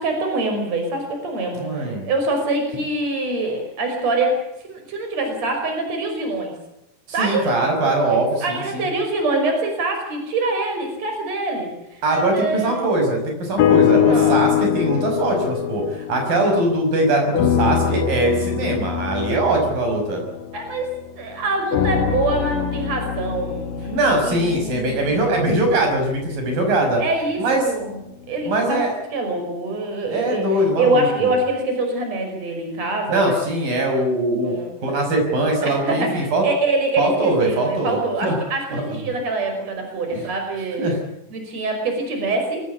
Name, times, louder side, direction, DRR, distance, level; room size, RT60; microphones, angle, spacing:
voice 1, 0.0-6.6 7.1-7.5 8.1-12.8 14.0-14.4 20.5-25.4 27.0-28.0 28.3-28.8 29.1-33.5 34.4-34.7 35.6-41.0 41.3-42.6, right 2 dB, 50° right, 4 dB, 6.5 m, -25 dB
voice 2, 1.6-2.0 7.2-8.9 12.0-20.2 23.9-27.0 27.4-27.6 28.5-28.9 30.1-31.3 33.1-34.5 34.8-36.4 37.0-38.0 38.2-38.3 38.7-38.8 40.8-41.0, right 2 dB, 80° right, 3 dB, 7.6 m, -21 dB
sound 1, 13.6-16.9 17.3-21.1 21.7-25.9 26.6-26.7, left 10 dB, 80° left, 3.1 m, -23 dB
23.0 x 18.0 x 8.4 m, 0.86 s
omnidirectional pair, 3.9 m